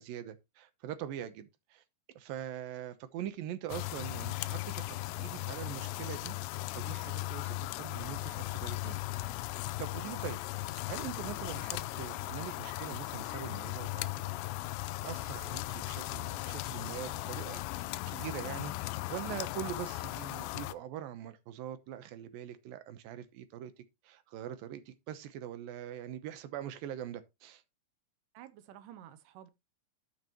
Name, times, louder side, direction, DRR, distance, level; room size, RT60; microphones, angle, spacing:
voice 1, 0.0-1.8 2.2-10.4 10.7-14.4 15.0-23.7 24.0-27.6, right 11 dB, 75° right, 2.3 m, -43 dB
sound 1, 3.7-20.7, left 18 dB, 85° left, 2.7 m, -37 dB
voice 2, 28.3-29.5, right 11 dB, 90° right, 1.9 m, -51 dB
12.5 x 6.2 x 3.0 m
omnidirectional pair, 5.0 m